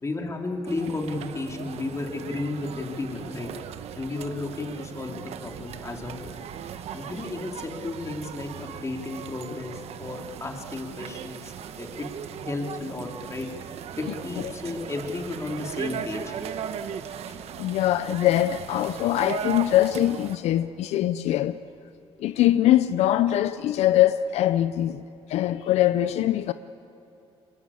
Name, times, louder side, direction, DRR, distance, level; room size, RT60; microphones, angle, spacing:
voice 1, 0.0-3.5 4.0-6.3 6.9-12.1 12.4-13.5 14.0-16.4, left 2 dB, 25° left, 3.3 m, -33 dB
sound 1, 0.7-20.4, right 8 dB, 70° right, 1.1 m, -38 dB
voice 2, 17.6-21.6 22.2-25.0 25.3-26.5, left 13 dB, 80° left, 0.6 m, -22 dB
22.5 x 21.5 x 8.5 m
cardioid pair, 90°, 11 cm